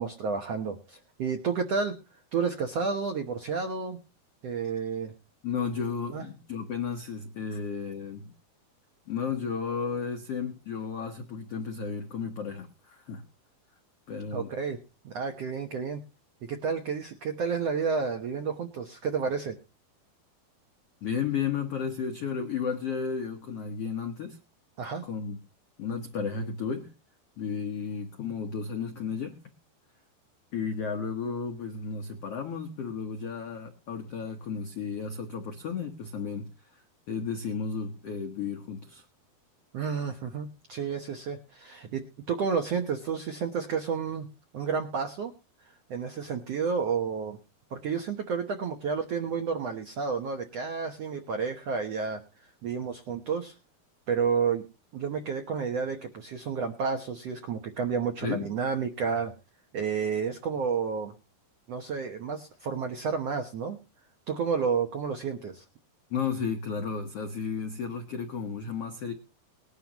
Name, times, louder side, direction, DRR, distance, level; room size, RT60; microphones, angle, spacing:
voice 1, 0.0-2.0 2.3-4.0 4.4-5.1 6.1-6.2 14.3-14.8 15.0-16.0 16.4-19.6 24.8-25.0 39.7-44.3 44.5-45.3 45.9-47.4 47.7-52.2 52.6-53.5 54.1-54.7 54.9-59.3 59.7-61.1 61.7-63.8 64.3-65.6, right 5 dB, 80° right, 6 dB, 1.4 m, -31 dB
voice 2, 5.4-8.3 9.1-13.2 14.1-14.5 21.0-24.4 25.0-25.4 25.8-26.9 27.4-29.3 30.5-36.5 37.1-39.0 58.2-58.5 66.1-69.1, left 6 dB, 80° left, 5 dB, 1.3 m, -33 dB
20.0 x 11.5 x 3.0 m, 0.30 s
omnidirectional pair, 4.5 m